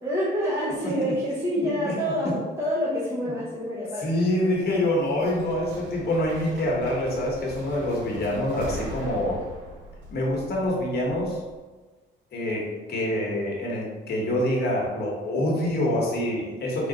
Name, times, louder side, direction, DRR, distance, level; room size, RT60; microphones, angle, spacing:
voice 1, 0.0-4.1, equal, 10° right, -8 dB, 1.0 m, -27 dB
voice 2, 0.8-1.1 1.6-1.9 4.0-9.4 10.1-11.4 12.3-16.9, left 1 dB, 55° left, -2 dB, 1.3 m, -26 dB
sound 1, 4.2-11.5, right 1 dB, 80° right, 0.8 m, -41 dB
3.9 x 2.5 x 3.9 m, 1.3 s
cardioid pair, 90°, 20 cm